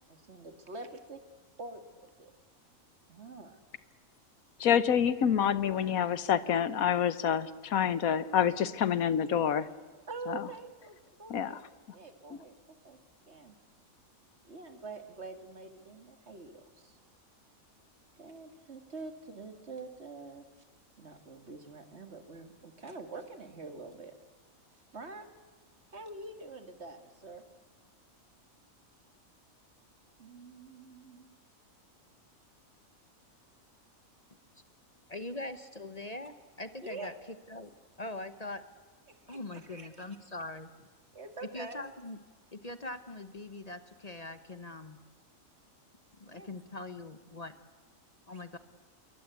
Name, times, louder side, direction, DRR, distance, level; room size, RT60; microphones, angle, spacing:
voice 1, 0.1-1.2 1.6-2.3 3.1-3.6 10.1-11.6 11.9-12.6 12.8-13.0 13.3-13.6 14.5-17.0 18.2-20.5 21.0-24.1 24.9-25.3 25.9-27.4 30.2-31.4 36.8-37.1 39.1-40.2 41.1-41.8 46.3-46.5 48.3-48.4, right 3 dB, 50° right, 8 dB, 2.3 m, -46 dB
voice 2, 4.6-9.7 10.3-10.4 11.3-11.6, left 8 dB, 90° left, 16 dB, 1.4 m, -27 dB
voice 3, 35.1-37.1 37.5-37.7 38.0-38.6 39.3-40.9 41.5-42.2 42.5-45.0 46.2-47.6 48.3-48.6, left 2 dB, 30° left, 11 dB, 1.0 m, -42 dB
28.0 x 22.5 x 8.3 m, 1.5 s
omnidirectional pair, 1.4 m